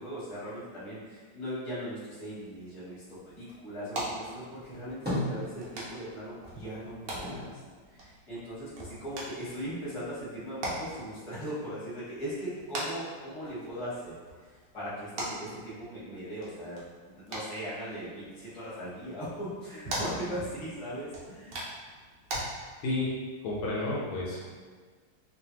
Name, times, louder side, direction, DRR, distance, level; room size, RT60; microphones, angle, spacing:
voice 1, 0.0-7.6 7.9-16.8 17.0-21.5, equal, 20° left, -11 dB, 0.9 m, -39 dB
sound 1, 2.6-22.4, right 1 dB, 75° right, 0.7 m, -42 dB
sound 2, 4.7-6.1 6.4-8.8 9.1-10.0, left 1 dB, 15° right, 0.3 m, -37 dB
voice 2, 23.4-24.5, left 2 dB, 75° left, -5 dB, 1.4 m, -31 dB
3.2 x 2.4 x 2.7 m, 1.5 s
omnidirectional pair, 2.3 m